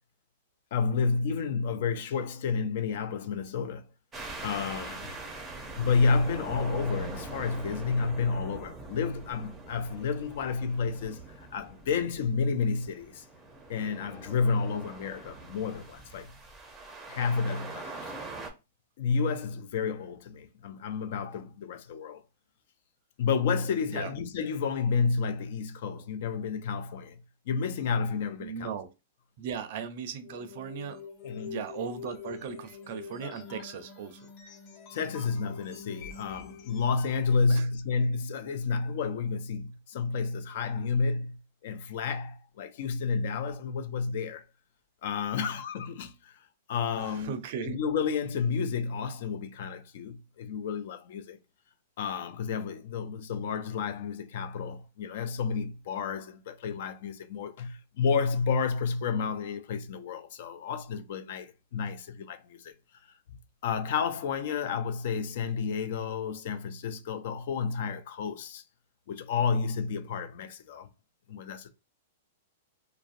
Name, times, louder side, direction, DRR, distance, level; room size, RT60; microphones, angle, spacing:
voice 1, 0.7-3.9 4.4-5.1 5.8-13.2 13.7-16.3 17.1-18.1 19.0-22.2 23.2-27.2 27.5-28.8 31.2-31.6 34.9-44.4 45.0-46.3 46.7-47.3 47.6-51.4 52.0-62.7 63.6-68.6 69.1-70.9 71.3-71.7, left 5 dB, 60° left, 0.4 m, -30 dB
sound 1, 4.1-18.5, right 3 dB, 15° right, 0.6 m, -43 dB
voice 2, 28.4-28.9 29.4-31.0 31.5-34.3 37.5-37.7 46.9-47.8, right 7 dB, 55° right, 0.4 m, -37 dB
sound 2, 30.2-37.4, left 6 dB, 40° left, 0.8 m, -45 dB
2.5 x 2.1 x 2.5 m
hypercardioid pair, 135°, 0 cm